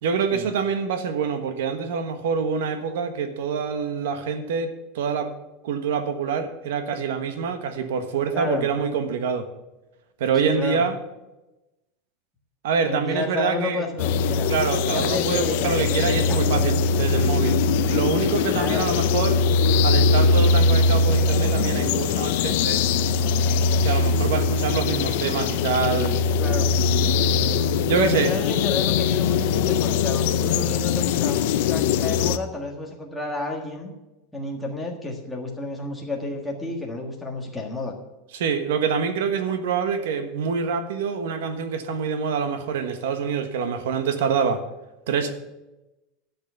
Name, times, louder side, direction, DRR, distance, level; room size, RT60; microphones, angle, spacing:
voice 1, 0.0-5.3 5.6-9.5 10.2-10.9 12.6-13.8 14.5-19.4 19.8-22.8 23.8-26.2 27.9-28.3 38.3-44.6 45.1-45.3, right 6 dB, 85° right, 8 dB, 1.4 m, -26 dB
voice 2, 8.3-8.7 10.4-10.8 12.8-14.5 14.9-16.7 18.5-18.9 26.4-26.7 28.0-33.9 34.3-37.9, left 2 dB, 5° left, -1 dB, 1.5 m, -31 dB
sound 1, 14.0-32.4, left 4 dB, 55° left, 0.6 m, -21 dB
12.0 x 6.5 x 8.0 m, 1.0 s
supercardioid pair, 180°, 0 cm